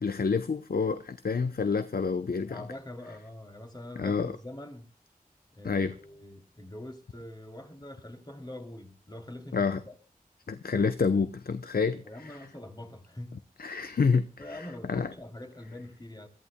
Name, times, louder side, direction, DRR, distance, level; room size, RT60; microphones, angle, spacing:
voice 1, 0.0-2.6 4.0-4.3 5.6-5.9 9.5-9.8 10.5-12.4 13.6-15.1, left 5 dB, 85° left, 0.7 m, -28 dB
voice 2, 2.4-4.9 5.5-9.9 12.0-13.3 14.4-16.3, left 1 dB, 30° left, 3.0 m, -44 dB
28.0 x 14.0 x 2.2 m
wide cardioid pair, 65°, 15 cm